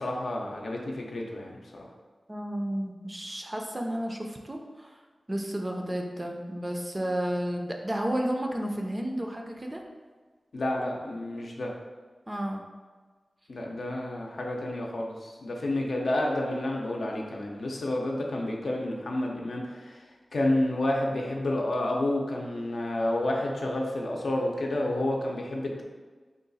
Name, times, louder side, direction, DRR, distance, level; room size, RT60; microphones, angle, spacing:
voice 1, 0.0-1.9 10.5-11.7 13.5-25.8, left 1 dB, 75° left, -1 dB, 0.6 m, -30 dB
voice 2, 2.3-5.0 5.3-9.8 12.3-12.6, right 1 dB, 20° right, 2 dB, 0.4 m, -32 dB
3.7 x 2.3 x 3.9 m, 1.4 s
wide cardioid pair, 110°, 0 cm